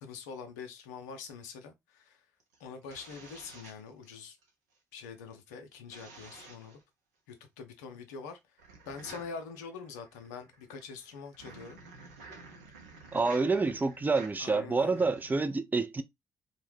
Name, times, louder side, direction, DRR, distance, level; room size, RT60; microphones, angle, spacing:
voice 1, 0.0-2.2 2.6-4.4 4.9-6.8 7.3-8.4 8.9-11.8 13.2-13.5 14.4-15.0, left 5 dB, 75° left, 0.5 m, -44 dB
sound 1, 2.4-4.5 5.9-6.8 8.6-15.4, right 3 dB, 80° right, 0.6 m, -51 dB
voice 2, 13.1-16.0, right 3 dB, 20° right, 0.4 m, -28 dB
2.6 x 2.1 x 3.2 m
figure-of-eight pair, 40°, 9 cm